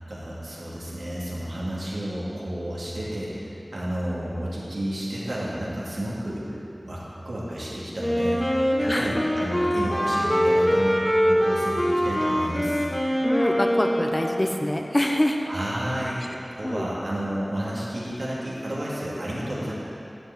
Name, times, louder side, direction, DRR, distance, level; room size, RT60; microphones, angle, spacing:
voice 1, 0.1-6.6 6.8-12.8 15.5-16.3 16.5-19.7, equal, 75° right, -7 dB, 2.4 m, -31 dB
Wind instrument woodwind instrument, 8.0-14.7, equal, 5° left, 1.5 m, -23 dB
voice 2, 8.8-9.2 13.2-15.5 16.6-16.9, left 1 dB, 30° left, 3 dB, 0.8 m, -25 dB
12.0 x 4.8 x 7.8 m, 2.7 s
wide cardioid pair, 50°, 0 cm